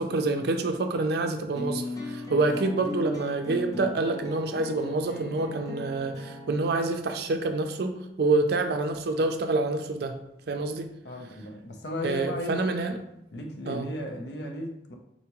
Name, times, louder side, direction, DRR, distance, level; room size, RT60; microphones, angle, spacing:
voice 1, 0.0-10.2 10.5-10.9 12.0-13.0 13.7-13.9, right 3 dB, 60° right, 6 dB, 0.4 m, -27 dB
sound 1, 1.6-6.6, left 2 dB, 20° left, 0.6 m, -37 dB
voice 2, 11.0-12.6 13.3-14.9, equal, 70° left, 2 dB, 0.7 m, -35 dB
4.2 x 3.4 x 3.0 m, 0.81 s
head